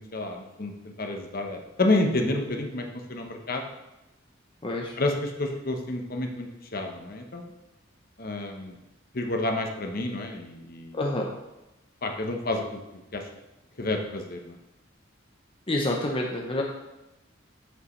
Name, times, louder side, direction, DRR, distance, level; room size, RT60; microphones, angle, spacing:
voice 1, 0.0-3.6 5.0-7.5 8.2-8.8 9.1-11.0 12.0-12.8 13.1-13.3 13.8-14.6, left 2 dB, 50° left, 3 dB, 1.0 m, -29 dB
voice 2, 4.6-4.9 10.9-11.3 15.7-16.6, left 1 dB, 25° left, 0 dB, 0.7 m, -27 dB
8.4 x 7.5 x 3.2 m, 0.97 s
head